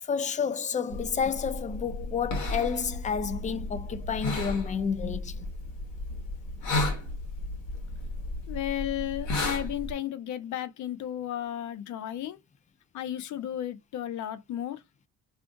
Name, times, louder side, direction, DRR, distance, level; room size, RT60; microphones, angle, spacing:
voice 1, 0.0-5.5, left 6 dB, 25° left, 0.4 m, -30 dB
sound 1, 0.9-9.9, left 2 dB, 85° left, 1.2 m, -34 dB
voice 2, 8.5-12.4 12.9-14.8, left 11 dB, 70° left, 0.6 m, -34 dB
2.5 x 2.4 x 3.7 m
cardioid pair, 90°, 30 cm